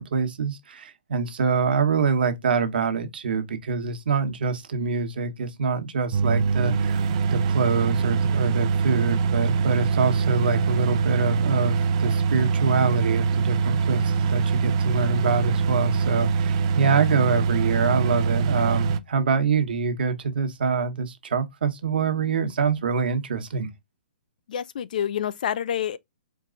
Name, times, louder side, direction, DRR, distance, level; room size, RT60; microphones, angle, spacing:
voice 1, 0.0-7.0 7.3-23.7, right 5 dB, 70° right, 1.2 m, -25 dB
sound 1, 6.1-19.0, right 5 dB, 35° right, 0.5 m, -23 dB
voice 2, 24.5-26.0, left 9 dB, 50° left, 0.4 m, -27 dB
4.5 x 2.4 x 3.7 m
hypercardioid pair, 165°, 5 cm